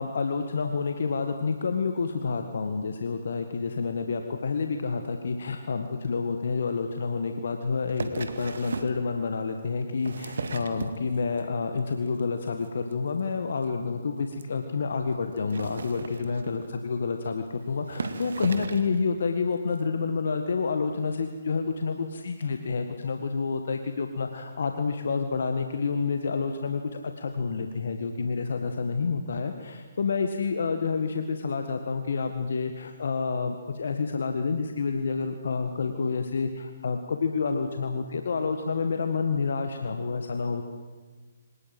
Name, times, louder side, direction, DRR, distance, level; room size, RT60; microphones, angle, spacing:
voice 1, 0.0-40.7, left 4 dB, 65° left, 6 dB, 1.8 m, -29 dB
sound 1, 7.9-9.0 9.8-11.4 11.8-12.2 12.5-12.7 12.9-13.0 13.2-13.3 13.6-13.7 14.3-14.4 15.4-16.7 17.4-17.5 17.9-19.0 19.7-19.8, right 4 dB, 70° right, 2.1 m, -36 dB
25.0 x 19.0 x 7.8 m, 1.4 s
figure-of-eight pair, 140°, 0 cm